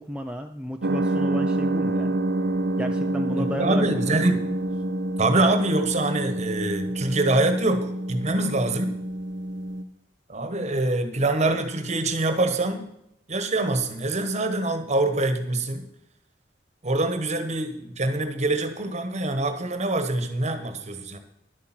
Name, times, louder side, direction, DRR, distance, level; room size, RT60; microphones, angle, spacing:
voice 1, 0.0-2.2 2.8-4.2, equal, 5° right, 4 dB, 0.5 m, -33 dB
sound 1, 0.8-9.8, right 1 dB, 70° right, 0.8 m, -27 dB
voice 2, 3.4-4.4 5.2-8.9 10.3-12.9 13.3-15.8 16.8-21.2, right 2 dB, 40° right, 8 dB, 1.3 m, -24 dB
11.0 x 8.5 x 6.0 m, 0.82 s
head